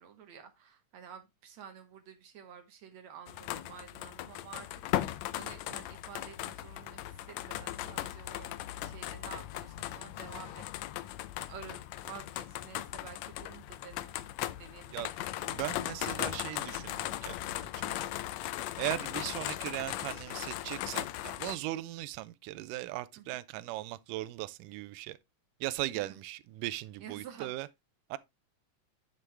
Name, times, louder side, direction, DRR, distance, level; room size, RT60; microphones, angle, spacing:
voice 1, 0.0-8.5 8.8-14.1 14.6-15.1 15.4-15.6 23.2-23.3 25.9-26.1 27.0-27.5, right 7 dB, 65° right, 2.1 m, -50 dB
sound 1, 3.3-21.6, left 14 dB, 85° left, 1.5 m, -38 dB
voice 2, 15.5-18.0 18.8-21.1 21.4-25.2 25.6-27.7 28.1-28.2, right 16 dB, 80° right, 2.2 m, -38 dB
9.9 x 6.2 x 3.3 m
omnidirectional pair, 3.8 m